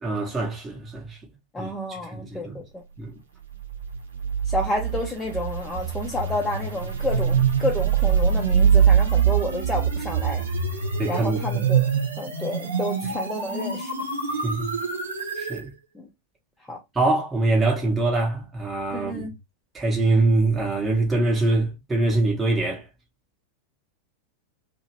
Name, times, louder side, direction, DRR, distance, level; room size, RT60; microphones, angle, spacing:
voice 1, 0.0-1.2 1.6-2.6 3.0-3.1 11.0-11.6 14.4-14.8 15.4-15.7 16.9-19.3 19.7-22.8, right 2 dB, 15° right, 0.9 m, -24 dB
voice 2, 1.5-2.8 4.5-10.4 11.1-11.9 12.2-13.9 15.9-16.0 16.7-16.8 18.9-19.3, left 1 dB, 10° left, 0.7 m, -30 dB
sound 1, 3.5-15.6, right 7 dB, 70° right, 0.9 m, -24 dB
2.8 x 2.6 x 2.9 m
figure-of-eight pair, 90°, 0 cm